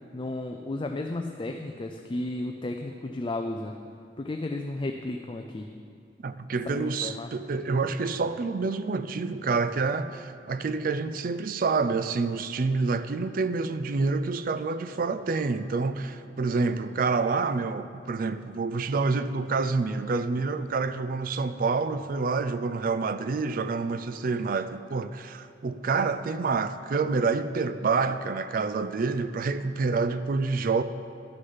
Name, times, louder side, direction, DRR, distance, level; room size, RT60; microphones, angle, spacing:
voice 1, 0.1-3.8 4.2-5.7 6.7-7.3, left 2 dB, 30° left, 4 dB, 0.4 m, -33 dB
voice 2, 6.2-30.8, right 4 dB, 50° right, 11 dB, 0.4 m, -28 dB
11.5 x 6.5 x 5.6 m, 2.5 s
head